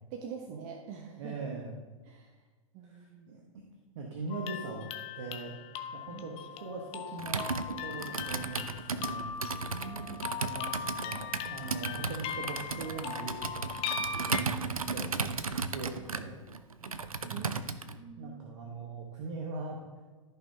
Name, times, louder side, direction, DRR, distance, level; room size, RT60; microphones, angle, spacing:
voice 1, 0.1-1.4 2.1-2.3 2.7-3.4 6.1-6.3 9.7-10.3 16.8-17.5 18.0-18.4, right 7 dB, 40° right, 3 dB, 0.9 m, -45 dB
voice 2, 1.2-1.8 2.8-3.4 3.9-4.9 5.1-5.6 5.9-9.3 10.2-10.7 11.0-13.6 14.1-16.4 17.2-17.7 18.2-19.8, right 3 dB, 60° right, 0 dB, 1.3 m, -41 dB
sound 1, 4.3-14.4, left 7 dB, 35° left, 0.8 m, -39 dB
Computer keyboard, 7.2-18.0, right 4 dB, 90° right, 0.6 m, -35 dB
14.0 x 5.8 x 2.8 m, 1.3 s
figure-of-eight pair, 100°, 18 cm